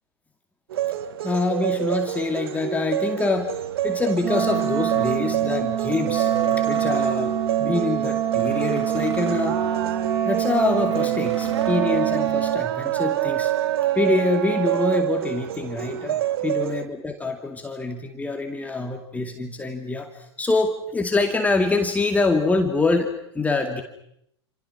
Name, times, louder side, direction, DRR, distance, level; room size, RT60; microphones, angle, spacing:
sound 1, 0.7-16.8, right 12 dB, 60° right, 1.5 m, -27 dB
voice 1, 1.2-3.6 3.8-6.3 6.6-9.6 10.2-13.5 14.0-23.8, left 3 dB, 10° left, 4 dB, 2.4 m, -25 dB
sound 2, 3.3-12.4, right 1 dB, 90° right, 2.9 m, -39 dB
Wind instrument woodwind instrument, 4.2-12.6, right 10 dB, 25° right, 2.8 m, -25 dB
28.5 x 28.0 x 6.2 m, 0.75 s
figure-of-eight pair, 95°, 14 cm